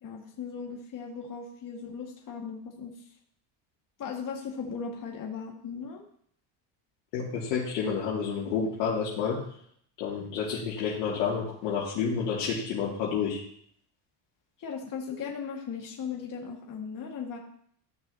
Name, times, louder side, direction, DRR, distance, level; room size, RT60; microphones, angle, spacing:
voice 1, 0.0-3.0 4.0-6.0 14.6-17.4, left 6 dB, 40° left, -1 dB, 1.9 m, -37 dB
voice 2, 7.1-9.4 10.0-13.4, left 6 dB, 80° left, -7 dB, 2.5 m, -29 dB
14.5 x 6.2 x 2.9 m, 0.63 s
supercardioid pair, 100°, 49 cm